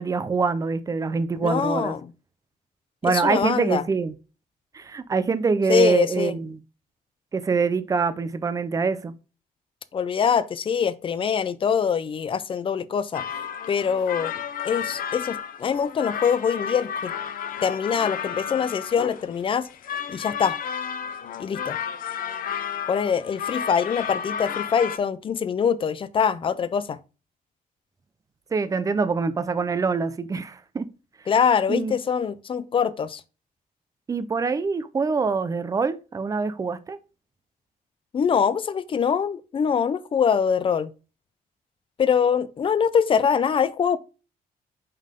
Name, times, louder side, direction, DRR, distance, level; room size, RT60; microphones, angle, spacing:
voice 1, 0.0-1.9 3.0-4.1 4.7-6.6 7.3-9.1 28.5-30.9 31.7-31.9 34.1-37.0, right 4 dB, 20° right, 0.5 m, -24 dB
voice 2, 1.4-2.1 3.1-3.8 5.7-6.3 9.9-13.2 13.7-14.3 14.6-17.1 17.6-19.7 20.1-20.6 21.4-21.8 22.9-27.0 31.3-33.2 38.1-40.9 42.0-44.0, left 7 dB, 35° left, 0.5 m, -23 dB
sound 1, 13.1-25.0, left 8 dB, 65° left, 0.7 m, -32 dB
5.5 x 5.5 x 3.6 m
wide cardioid pair, 175°, 15 cm